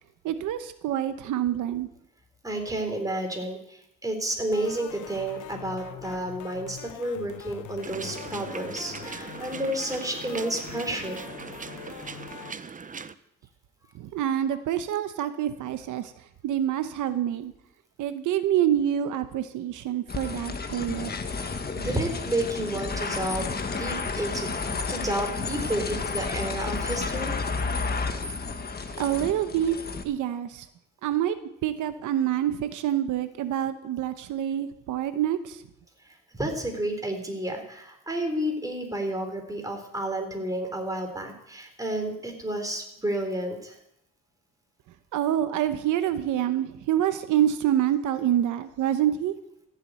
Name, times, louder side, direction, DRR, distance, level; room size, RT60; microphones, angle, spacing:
voice 1, 0.2-1.9 13.9-16.1 16.4-17.5 18.0-21.1 29.0-29.8 30.0-30.7 31.0-31.3 31.6-35.6 45.1-49.3, right 11 dB, 85° right, 10 dB, 1.0 m, -26 dB
voice 2, 2.4-11.2 21.7-23.5 23.8-24.5 24.9-27.4 36.1-43.8, right 1 dB, 10° right, 3 dB, 4.1 m, -31 dB
sound 1, 4.5-12.5, left 12 dB, 75° left, 0.9 m, -43 dB
sound 2, 7.8-13.1, right 5 dB, 25° right, 0.7 m, -40 dB
sound 3, 20.1-30.0, left 4 dB, 30° left, 1.5 m, -31 dB
14.5 x 7.5 x 9.2 m, 0.80 s
cardioid pair, 90°, 30 cm